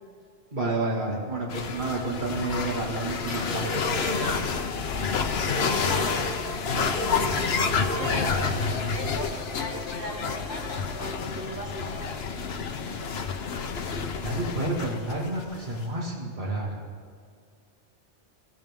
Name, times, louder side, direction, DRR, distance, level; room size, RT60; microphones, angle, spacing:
voice 1, 0.5-3.7 14.2-16.8, right 2 dB, 45° right, -3 dB, 2.3 m, -30 dB
sound 1, 1.5-15.8, left 5 dB, 65° left, 1.0 m, -29 dB
sound 2, 3.3-9.0, equal, 15° left, 4.3 m, -34 dB
voice 2, 5.3-6.2 6.5-7.4 7.9-12.1, left 1 dB, 85° right, -5 dB, 3.8 m, -38 dB
sound 3, 6.7-13.5, left 2 dB, 30° left, 1.7 m, -45 dB
21.5 x 15.5 x 3.6 m, 2.1 s
omnidirectional pair, 1.2 m